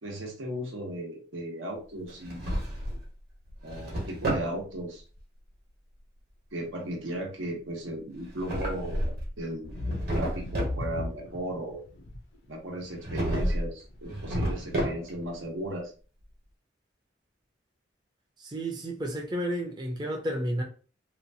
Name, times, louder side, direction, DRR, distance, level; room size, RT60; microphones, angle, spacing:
voice 1, 0.0-2.6 3.6-5.0 6.5-9.0 9.4-11.9 12.5-15.9, right 1 dB, 90° right, 0.9 m, -36 dB
Drawer open or close, 2.1-3.1 3.5-4.5 8.2-9.3 9.7-10.8 13.0-13.7 14.0-15.3, right 1 dB, 50° right, 1.1 m, -31 dB
sound 1, 9.6-12.2 12.8-13.2 13.5-13.6 14.3-14.6, left 2 dB, 65° left, 0.5 m, -35 dB
voice 2, 18.4-20.6, right 1 dB, 20° right, 0.5 m, -31 dB
2.9 x 2.3 x 2.6 m
head